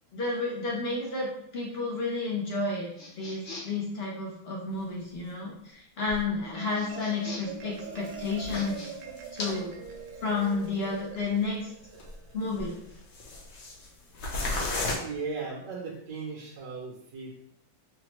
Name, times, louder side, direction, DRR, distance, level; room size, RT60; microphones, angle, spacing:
voice 1, 0.1-2.9 3.2-8.8 9.3-9.7 10.2-11.7 12.3-12.7, left 3 dB, 85° left, -3 dB, 0.5 m, -31 dB
sound 1, 2.9-3.8 6.7-7.6 8.4-8.9, left 2 dB, 45° left, 0.7 m, -43 dB
sound 2, 5.0-5.1 6.0-6.2 6.6-6.7 8.0-9.6 9.8-9.9 10.6-10.8 11.2-11.3 11.9-12.3 12.5-13.9 14.1-15.0, left 2 dB, 60° left, 1.0 m, -34 dB
Marimba xylophone, 6.3-12.9, right 5 dB, 90° right, 1.3 m, -44 dB
voice 2, 15.0-17.3, right 4 dB, 70° right, -3 dB, 1.2 m, -37 dB
5.6 x 2.1 x 2.9 m, 0.75 s
omnidirectional pair, 2.1 m